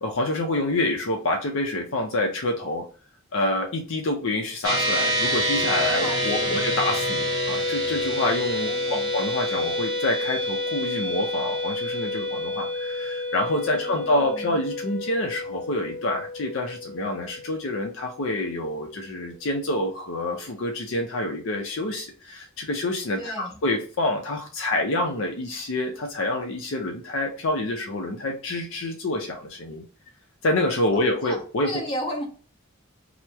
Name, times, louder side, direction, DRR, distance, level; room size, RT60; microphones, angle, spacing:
voice 1, 0.0-2.9 3.3-29.8 30.4-31.7, left 2 dB, 70° left, 2 dB, 0.6 m, -27 dB
sound 1, 4.6-18.2, left 1 dB, 20° right, 0.9 m, -28 dB
voice 2, 5.9-6.7 8.6-9.1 13.7-14.6 23.2-23.5 30.9-32.2, equal, 25° left, -3 dB, 1.1 m, -35 dB
3.0 x 2.1 x 3.4 m, 0.38 s
head